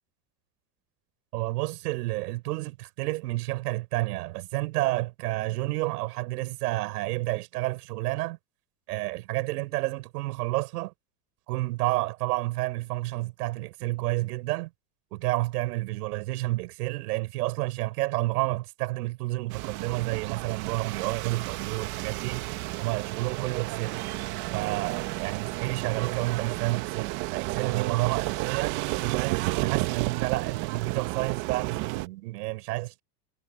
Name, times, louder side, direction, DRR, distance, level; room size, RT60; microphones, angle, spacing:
voice 1, 1.3-8.4 8.9-10.9 11.5-14.7 15.1-22.5 22.8-24.0 24.5-33.0, right 19 dB, 85° right, 6.0 m, -30 dB
sound 1, 19.5-32.1, right 20 dB, 50° right, 1.6 m, -32 dB
supercardioid pair, 165°, 46 cm